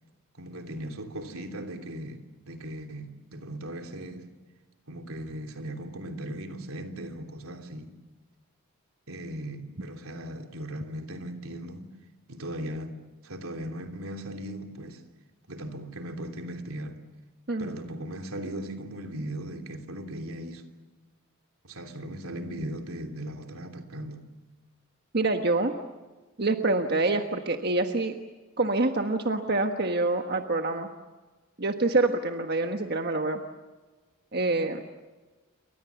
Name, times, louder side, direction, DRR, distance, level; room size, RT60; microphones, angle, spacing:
voice 1, 0.4-4.3 4.9-7.9 9.1-11.9 12.3-12.9 13.2-15.0 15.5-17.0 17.6-20.6 21.6-24.3, right 1 dB, 85° right, 3.2 m, -38 dB
voice 2, 25.1-25.7 26.4-28.1 28.6-30.9 31.6-33.4 34.3-34.8, right 2 dB, 50° right, 1.4 m, -26 dB
28.5 x 24.5 x 7.1 m
head